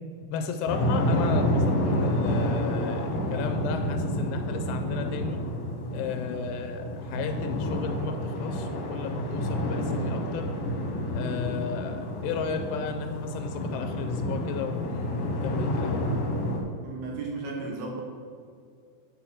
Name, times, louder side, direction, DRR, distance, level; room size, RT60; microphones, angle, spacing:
voice 1, 0.3-5.4 5.9-10.5 11.1-16.1, left 6 dB, 90° left, 5 dB, 2.7 m, -34 dB
sound 1, 0.7-16.6, equal, 70° left, 2.7 m, -29 dB
voice 2, 16.8-18.0, right 3 dB, 75° right, 0 dB, 2.9 m, -34 dB
9.1 x 4.2 x 5.8 m, 2.3 s
omnidirectional pair, 4.7 m